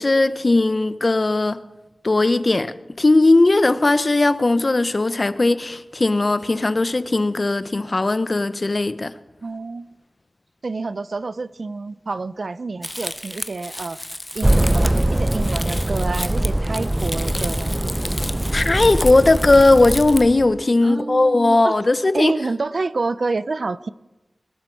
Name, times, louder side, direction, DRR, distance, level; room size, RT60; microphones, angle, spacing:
voice 1, 0.0-1.6 2.0-9.1 18.5-22.3, left 2 dB, 50° left, 0.8 m, -18 dB
voice 2, 9.4-9.9 10.6-14.0 14.3-17.9 20.8-21.8 22.1-23.9, right 3 dB, 75° right, 0.5 m, -28 dB
Crumpling crinkling, 12.8-20.2, left 1 dB, 15° left, 0.6 m, -33 dB
sound 1, 14.4-20.6, right 1 dB, 25° right, 0.6 m, -22 dB
21.5 x 12.0 x 4.7 m
cardioid pair, 40°, 0 cm